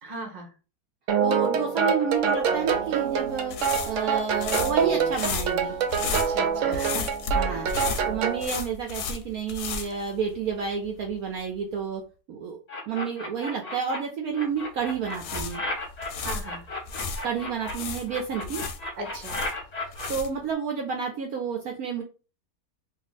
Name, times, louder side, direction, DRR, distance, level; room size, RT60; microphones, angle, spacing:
voice 1, 0.0-0.5 6.1-7.0 7.4-7.7 16.2-16.6 19.0-19.4, right 2 dB, 35° right, 2 dB, 0.7 m, -37 dB
sound 1, 1.1-8.5, right 6 dB, 90° right, 0.6 m, -26 dB
voice 2, 1.2-3.5 3.9-5.7 7.3-7.7 8.1-12.0 12.3-12.6 12.9-15.6 17.2-18.6 20.1-22.0, right 6 dB, 65° right, 1 dB, 1.0 m, -30 dB
sound 2, 2.6-10.7 11.0-11.2 14.9-17.2 17.7-20.5, left 4 dB, 70° left, 1.0 m, -33 dB
sound 3, 12.7-14.0 14.3-17.7 18.1-20.1, left 2 dB, 30° left, 0.8 m, -34 dB
2.7 x 2.7 x 4.0 m, 0.33 s
omnidirectional pair, 1.9 m